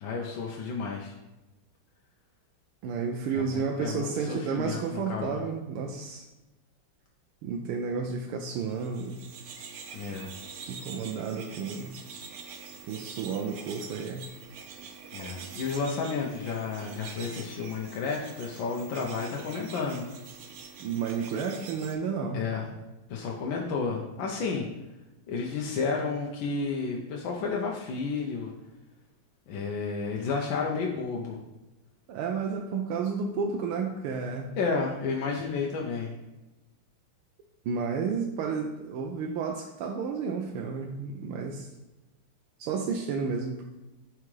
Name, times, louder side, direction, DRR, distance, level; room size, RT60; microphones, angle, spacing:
voice 1, 0.0-1.1 3.3-5.4 9.9-10.3 15.1-20.1 22.3-22.7 23.1-24.7 25.3-28.5 29.5-31.4 34.6-36.1, left 4 dB, 70° left, -1 dB, 1.5 m, -31 dB
voice 2, 2.8-6.2 7.4-9.2 10.7-11.9 12.9-14.2 20.8-22.4 32.1-34.6 37.6-41.7 42.6-43.6, right 5 dB, 90° right, 2 dB, 1.6 m, -31 dB
sound 1, 8.7-22.0, right 6 dB, 60° right, 1.0 m, -45 dB
11.0 x 4.9 x 3.2 m, 1.0 s
omnidirectional pair, 2.3 m